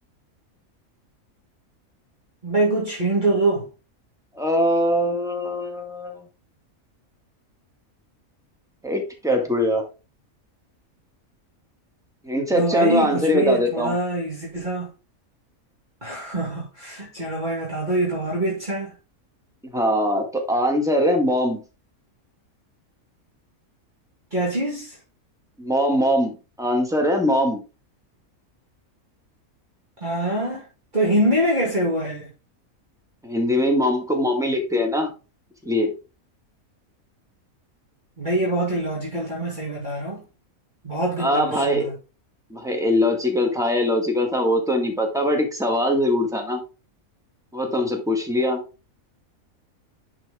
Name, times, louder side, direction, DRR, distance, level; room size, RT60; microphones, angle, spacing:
voice 1, 2.4-3.7 12.5-14.9 16.0-18.9 24.3-25.0 30.0-30.7 30.9-32.3 38.2-40.2 40.8-41.9, right 1 dB, 35° right, 2.5 m, -24 dB
voice 2, 4.3-6.2 8.8-9.8 12.2-14.0 19.7-21.6 25.6-27.6 33.2-35.1 35.6-35.9 41.2-41.9 42.5-46.6 47.5-48.6, left 1 dB, ahead, 1.8 m, -22 dB
10.5 x 4.8 x 3.6 m
omnidirectional pair, 1.5 m